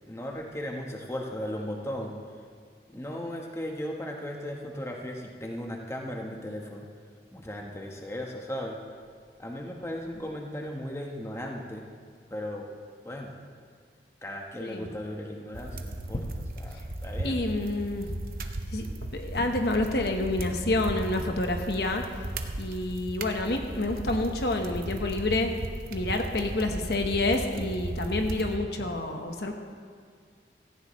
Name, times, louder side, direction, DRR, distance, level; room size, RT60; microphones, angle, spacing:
voice 1, 0.1-2.4 2.9-6.9 7.3-8.8 9.4-11.9 12.3-12.7 13.0-13.4 14.2-17.5, left 1 dB, 15° left, 0 dB, 1.1 m, -36 dB
sound 1, 15.5-28.6, right 1 dB, 55° right, 0.9 m, -36 dB
voice 2, 17.2-18.1 18.7-22.0 22.6-25.5 25.9-29.5, left 2 dB, 65° left, 4 dB, 1.1 m, -28 dB
17.0 x 15.0 x 3.2 m, 2.1 s
head